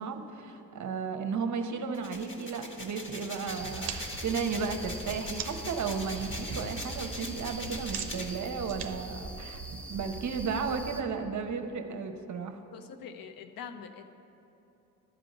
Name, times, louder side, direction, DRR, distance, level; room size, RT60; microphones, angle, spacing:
voice 1, 0.0-3.9 4.2-12.6, right 5 dB, 40° right, 6 dB, 0.9 m, -34 dB
sound 1, 1.9-8.3, left 1 dB, 25° left, 1.7 m, -41 dB
sound 2, 3.5-11.0, right 2 dB, ahead, 0.9 m, -41 dB
sound 3, 3.8-5.8 6.2-6.6 6.9-10.1, right 9 dB, 85° right, 0.6 m, -43 dB
voice 2, 12.7-14.1, left 7 dB, 45° left, 7 dB, 0.7 m, -44 dB
12.0 x 5.1 x 7.9 m, 3.0 s
figure-of-eight pair, 45°, 47 cm